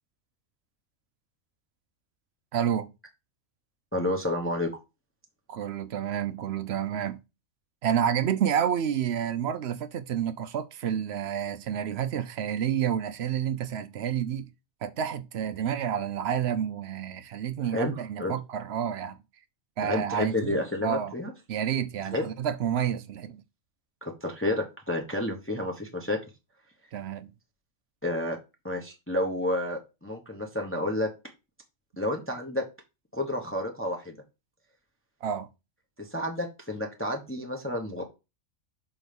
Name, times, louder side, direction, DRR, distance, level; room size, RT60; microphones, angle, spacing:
voice 1, 2.5-2.9 5.5-7.2 7.8-14.5 14.8-19.2 19.8-21.1 21.5-23.4 26.9-27.3 35.2-35.5, right 9 dB, 65° right, 0.7 m, -29 dB
voice 2, 3.9-4.7 17.6-17.9 18.2-18.3 19.8-21.3 22.1-22.3 24.0-26.2 28.0-28.4 28.6-31.1 32.0-32.7 33.1-34.2 36.0-38.0, left 1 dB, 10° left, 0.9 m, -30 dB
6.1 x 3.8 x 5.1 m
omnidirectional pair, 1.4 m